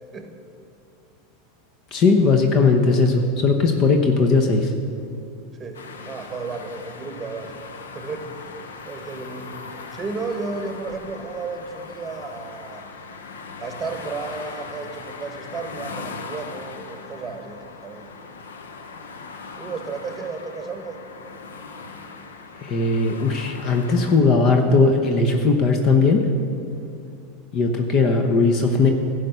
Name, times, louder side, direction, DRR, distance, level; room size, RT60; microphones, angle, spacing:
voice 1, 1.9-4.7 22.6-26.2 27.5-28.9, left 4 dB, 45° left, 4 dB, 0.9 m, -18 dB
voice 2, 5.6-7.6 7.9-8.3 8.9-9.6 9.9-12.9 13.6-18.1 19.5-21.0 27.0-27.2, right 4 dB, 15° right, 5 dB, 1.4 m, -33 dB
sound 1, 5.7-24.2, left 4 dB, 90° left, 0.8 m, -39 dB
12.0 x 5.1 x 8.1 m, 2.5 s
hypercardioid pair, 105°, 0 cm